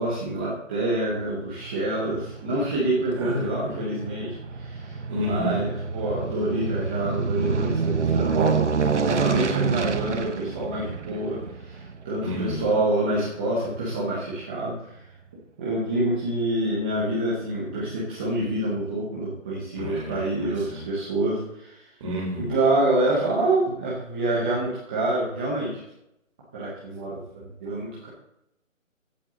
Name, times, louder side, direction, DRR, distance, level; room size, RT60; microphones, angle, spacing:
voice 1, 0.0-5.0 5.2-15.0 15.6-21.8 22.5-25.8 26.5-28.1, right 2 dB, 5° right, -8 dB, 0.9 m, -27 dB
Aircraft, 1.6-14.1 14.6-14.7, right 5 dB, 60° right, 1.2 m, -28 dB
voice 2, 3.2-3.8 5.1-5.6 12.2-12.7 19.8-20.9 22.0-22.6, left 1 dB, 20° right, -2 dB, 3.3 m, -31 dB
16.0 x 8.2 x 3.9 m, 0.81 s
hypercardioid pair, 165°, 40 cm